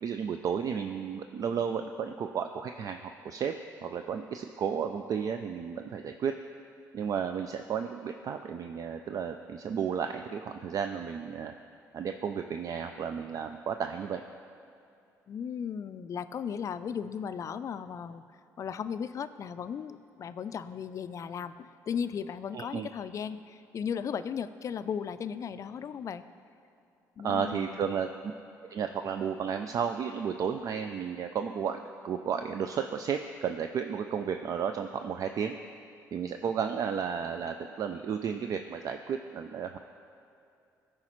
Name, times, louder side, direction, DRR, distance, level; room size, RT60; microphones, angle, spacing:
voice 1, 0.0-3.0 3.2-3.5 3.8-6.3 6.9-11.5 11.9-14.2 22.5-22.9 27.2-28.1 28.7-35.6 36.1-39.8, right 7 dB, 50° right, 6 dB, 0.3 m, -33 dB
voice 2, 15.3-18.2 18.6-26.2 27.2-27.8, left 7 dB, 45° left, 12 dB, 0.3 m, -36 dB
14.0 x 4.9 x 3.1 m, 2.6 s
supercardioid pair, 75°, 7 cm